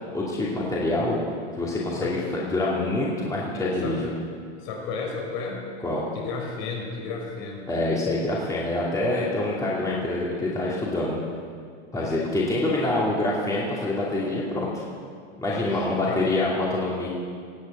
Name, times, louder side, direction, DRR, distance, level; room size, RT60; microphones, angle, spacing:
voice 1, 0.1-1.2 1.5-4.1 5.8-6.0 7.7-11.2 11.9-14.8 15.4-17.1, left 2 dB, 10° left, -5 dB, 2.5 m, -26 dB
voice 2, 3.5-4.0 4.6-5.7 6.1-7.7 9.1-9.4 12.0-12.3 15.4-16.2, left 4 dB, 50° left, 0 dB, 4.9 m, -34 dB
18.5 x 8.2 x 7.9 m, 2.1 s
hypercardioid pair, 130°, 35 cm